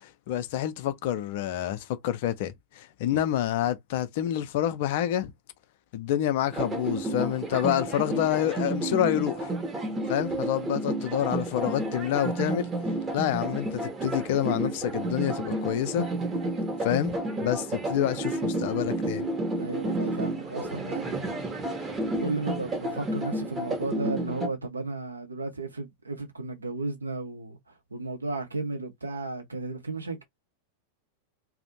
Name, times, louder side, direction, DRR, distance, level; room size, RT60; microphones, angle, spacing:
voice 1, 0.0-5.3 5.9-9.5 10.1-12.7 13.1-16.1 16.8-17.2 17.4-19.3, left 11 dB, 50° left, 0.4 m, -28 dB
sound 1, 6.5-24.5, right 2 dB, 20° right, 0.7 m, -31 dB
voice 2, 19.6-21.4 22.2-30.2, right 3 dB, 80° right, 0.6 m, -34 dB
2.4 x 2.0 x 2.7 m
figure-of-eight pair, 90°, 0 cm